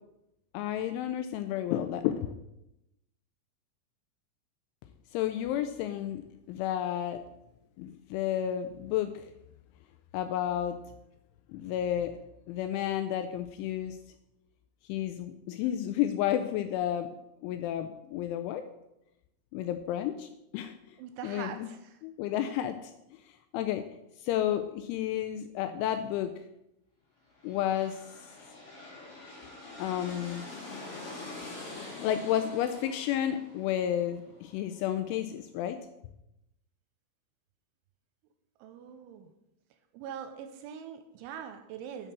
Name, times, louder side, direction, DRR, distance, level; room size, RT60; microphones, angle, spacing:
voice 1, 0.5-2.3 5.1-6.2 6.5-7.2 7.8-9.3 10.1-10.8 11.5-12.2 12.5-14.0 14.9-17.1 17.4-18.7 19.5-21.0 21.2-21.7 22.0-23.8 24.2-26.3 27.4-28.3 29.8-30.5 31.8-35.8, left 11 dB, 85° left, 8 dB, 2.8 m, -31 dB
voice 2, 21.0-22.0 38.6-39.3 39.9-42.1, right 8 dB, 85° right, 7 dB, 2.9 m, -43 dB
sound 1, 27.3-35.0, left 2 dB, 40° left, 2.3 m, -45 dB
7.3 x 6.4 x 6.6 m, 0.87 s
omnidirectional pair, 5.9 m